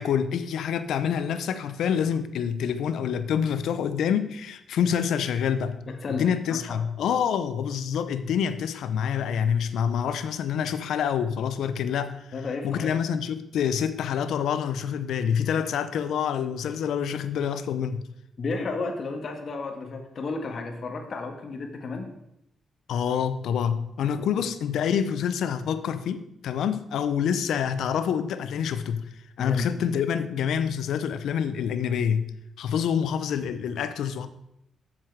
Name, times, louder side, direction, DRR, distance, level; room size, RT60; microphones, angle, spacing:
voice 1, 0.0-5.8 6.1-12.3 12.6-18.0 22.9-29.1 29.4-32.3 32.6-34.3, left 8 dB, 80° left, 0.6 m, -27 dB
voice 2, 6.0-6.8 12.3-12.9 18.4-22.1 24.2-24.3 29.4-29.7, left 3 dB, 50° left, 1.4 m, -32 dB
7.4 x 7.3 x 4.7 m
cardioid pair, 100°, 0 cm